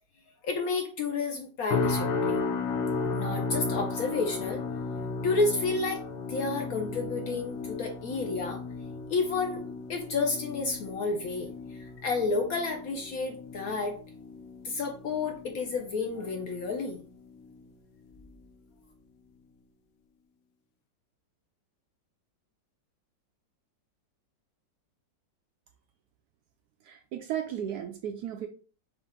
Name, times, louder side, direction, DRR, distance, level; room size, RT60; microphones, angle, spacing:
voice 1, 0.4-2.4 3.1-4.6 5.2-8.6 9.1-14.0 14.6-17.0, left 3 dB, 65° left, 4 dB, 0.9 m, -31 dB
sound 1, 1.7-16.9 17.3-17.7 18.1-18.3, left 4 dB, 85° left, 1.4 m, -35 dB
voice 2, 26.8-28.5, right 10 dB, 70° right, 5 dB, 0.9 m, -35 dB
5.3 x 2.5 x 3.6 m, 0.38 s
omnidirectional pair, 2.0 m